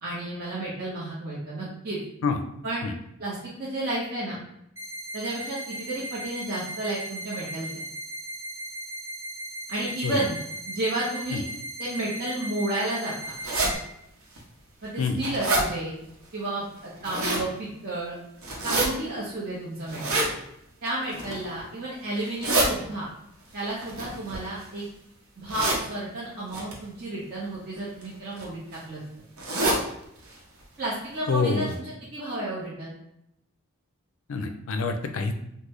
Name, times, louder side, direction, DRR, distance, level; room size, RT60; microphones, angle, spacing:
voice 1, 0.0-2.0 2.6-2.9 3.2-4.4 5.1-7.7 9.7-10.4 10.7-11.4 11.8-13.1 14.8-15.9 16.3-18.1 18.6-20.2 20.8-23.1 23.5-24.8 25.4-29.0 30.8-33.0, right 1 dB, 45° right, -8 dB, 0.8 m, -32 dB
sound 1, 4.8-13.8, right 1 dB, 10° right, 0.6 m, -37 dB
sound 2, 13.4-13.7 14.4-14.5 14.9-15.6 16.8-17.5 18.4-18.9 19.9-20.3 21.0-21.5 22.2-22.7 23.8-24.8 25.5-25.8 26.5-26.7 27.7-28.0 28.4-28.5 28.7-28.8 29.4-29.8 30.2-30.3 30.6-30.7 31.3-31.4 31.7-31.8, right 2 dB, 90° right, 0.9 m, -26 dB
voice 2, 31.3-31.7 34.3-35.3, left 4 dB, 75° left, 6 dB, 0.4 m, -26 dB
3.7 x 2.1 x 3.1 m, 0.79 s
head